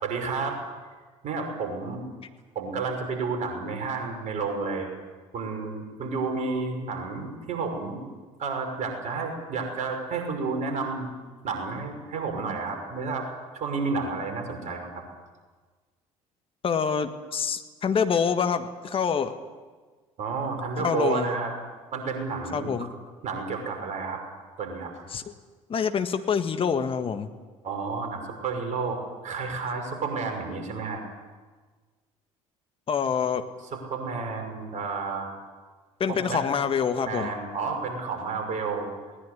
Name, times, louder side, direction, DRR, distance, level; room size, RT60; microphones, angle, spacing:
voice 1, 0.0-0.6 1.2-2.0 2.5-4.9 5.3-8.1 8.4-11.1 11.4-13.3 13.5-14.9 20.2-21.5 21.9-22.9 23.2-24.2 24.6-24.9 27.6-29.0 29.2-31.0 33.7-35.3 36.1-36.4 37.0-38.9, right 4 dB, 45° right, 4 dB, 5.8 m, -31 dB
voice 2, 16.6-19.3 20.8-21.3 22.5-22.9 25.1-25.2 25.7-27.3 32.9-33.4 36.0-37.3, left 6 dB, 30° left, 8 dB, 1.7 m, -26 dB
20.5 x 19.5 x 9.8 m, 1.4 s
figure-of-eight pair, 60°, 17 cm